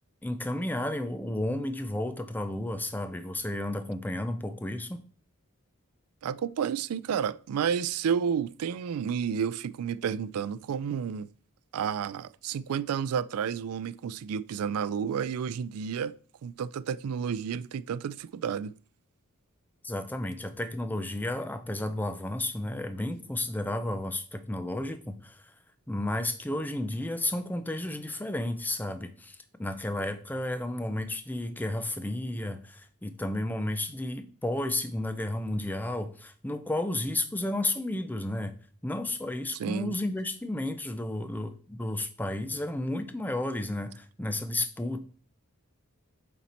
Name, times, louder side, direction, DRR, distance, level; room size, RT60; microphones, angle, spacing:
voice 1, 0.2-5.0 19.8-25.5 25.9-38.6 38.8-45.0, left 1 dB, 10° left, 0.4 m, -32 dB
voice 2, 6.2-11.3 11.7-16.1 16.4-18.7 39.6-39.9, right 7 dB, 80° right, 0.3 m, -31 dB
7.2 x 4.2 x 4.2 m
head